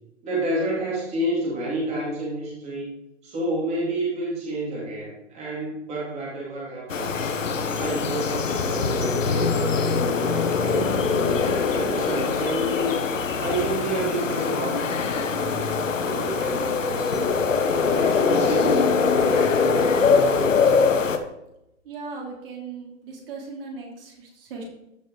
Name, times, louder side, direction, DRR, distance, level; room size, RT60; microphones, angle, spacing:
voice 1, 0.2-2.9 3.2-7.3 7.8-13.0 13.4-17.3 17.7-20.8, right 1 dB, 15° right, -5 dB, 2.6 m, -30 dB
sound 1, 6.9-21.2, left 5 dB, 75° left, 1.2 m, -23 dB
voice 2, 21.8-24.6, right 4 dB, 45° right, -1 dB, 3.0 m, -38 dB
14.0 x 5.2 x 3.8 m, 0.86 s
hypercardioid pair, 135°, 38 cm